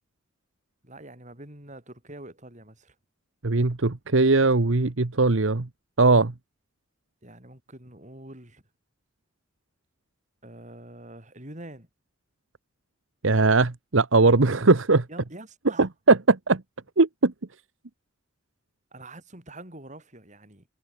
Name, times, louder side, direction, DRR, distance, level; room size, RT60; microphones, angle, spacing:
voice 1, 0.8-3.0 7.2-8.6 10.4-11.9 15.1-15.9 18.9-20.7, right 1 dB, 40° right, 7.2 m, -45 dB
voice 2, 3.4-5.7 6.0-6.3 13.2-15.0 15.8-16.6 17.0-17.3, right 3 dB, 75° right, 1.1 m, -20 dB
head